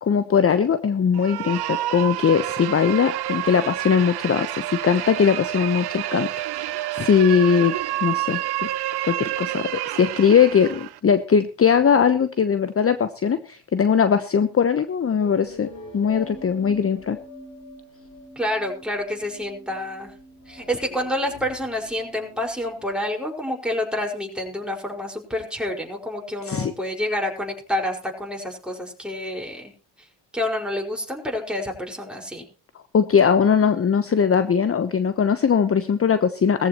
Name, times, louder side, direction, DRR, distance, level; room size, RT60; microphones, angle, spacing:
voice 1, 0.0-7.7 8.0-8.7 9.0-15.7 15.9-17.2 26.4-26.7 32.9-36.7, left 7 dB, 30° left, 12 dB, 1.0 m, -20 dB
sound 1, 1.1-11.0, right 15 dB, 60° right, 0.9 m, -29 dB
sound 2, 15.2-22.9, left 2 dB, 50° left, 6.3 m, -44 dB
voice 2, 18.4-20.1 20.5-29.7 30.0-30.1 30.3-32.5, left 1 dB, ahead, 0 dB, 5.2 m, -28 dB
19.0 x 14.5 x 3.1 m, 0.35 s
hypercardioid pair, 55°, 43 cm